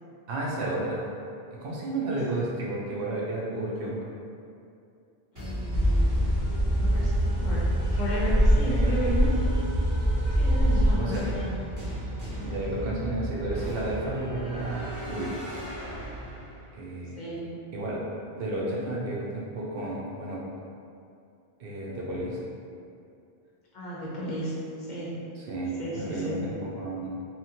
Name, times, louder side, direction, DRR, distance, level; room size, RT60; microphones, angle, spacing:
voice 1, 0.3-1.1 1.5-4.0 8.6-8.9 11.0-11.2 12.4-15.3 16.7-17.2 17.7-18.0 18.3-20.4 21.6-22.4 25.5-27.2, right 2 dB, 70° right, -5 dB, 0.7 m, -32 dB
voice 2, 2.1-2.4 5.3-6.1 6.5-9.4 10.4-11.6 12.3-12.5 17.2-17.6 23.7-25.2 25.8-26.4, equal, 55° left, -7 dB, 0.6 m, -34 dB
sound 1, 5.4-16.8, right 1 dB, 20° right, 0.7 m, -35 dB
sound 2, 5.7-10.9, equal, 50° right, 0.9 m, -23 dB
2.9 x 2.4 x 2.8 m, 2.5 s
omnidirectional pair, 1.1 m